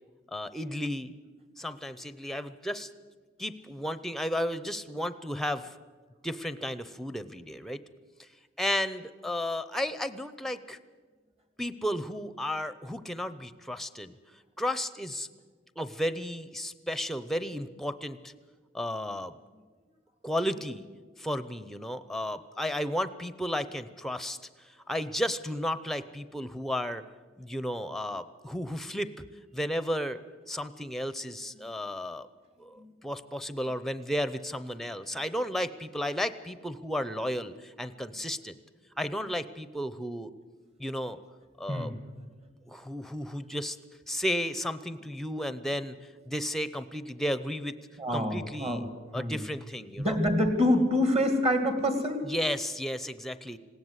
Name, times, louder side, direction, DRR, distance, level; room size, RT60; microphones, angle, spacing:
voice 1, 0.3-1.1 1.6-2.9 3.4-5.7 6.2-7.8 8.6-10.8 11.6-14.1 14.6-15.3 15.8-18.3 18.7-19.4 20.2-20.8 21.2-24.4 24.9-27.0 27.4-29.2 29.5-30.2 30.5-32.3 32.6-38.5 39.0-40.3 40.8-41.2 41.6-41.9 42.7-43.8 44.1-46.0 46.3-47.8 48.1-48.8 49.1-50.2 52.3-53.6, equal, ahead, 13 dB, 0.7 m, -33 dB
voice 2, 48.0-48.9 49.1-49.4 50.0-52.2, left 1 dB, 35° right, 7 dB, 2.2 m, -26 dB
20.0 x 17.0 x 8.1 m, 1.4 s
head